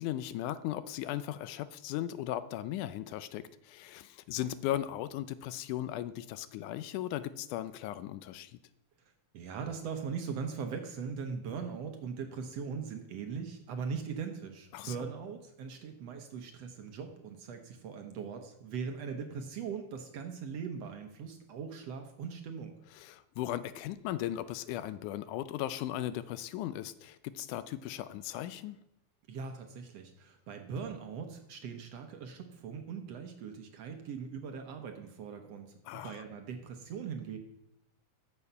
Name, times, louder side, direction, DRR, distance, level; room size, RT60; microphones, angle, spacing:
voice 1, 0.0-8.5 14.7-15.0 23.0-28.8 35.9-36.2, left 13 dB, 80° left, 14 dB, 2.0 m, -37 dB
voice 2, 9.3-22.8 29.3-37.4, right 6 dB, 65° right, 5 dB, 1.8 m, -40 dB
13.5 x 6.9 x 5.6 m, 0.82 s
omnidirectional pair, 3.6 m